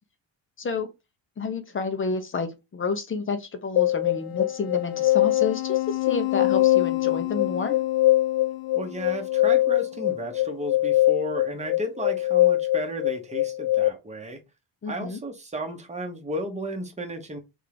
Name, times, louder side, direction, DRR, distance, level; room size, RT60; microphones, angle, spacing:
voice 1, 0.6-0.9 1.4-7.8 14.8-15.2, left 4 dB, 30° left, 0.9 m, -30 dB
sound 1, 3.8-13.9, left 15 dB, 90° left, 0.6 m, -23 dB
voice 2, 8.7-14.4 14.9-17.4, right 1 dB, 15° right, 1.1 m, -33 dB
3.7 x 3.6 x 3.5 m
cardioid pair, 135°, 44 cm